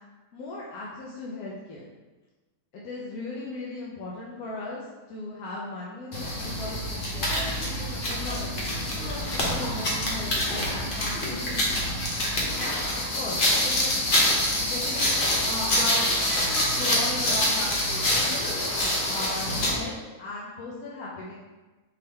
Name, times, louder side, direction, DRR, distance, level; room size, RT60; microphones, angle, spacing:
voice 1, 0.3-1.8 2.7-6.8 7.3-11.8 12.6-14.2 14.6-16.1 16.5-18.4 19.1-21.3, left 2 dB, 75° left, -5 dB, 1.2 m, -37 dB
sound 1, 6.1-19.8, left 1 dB, 40° left, 0.9 m, -26 dB
4.4 x 3.5 x 3.2 m, 1.2 s
omnidirectional pair, 1.7 m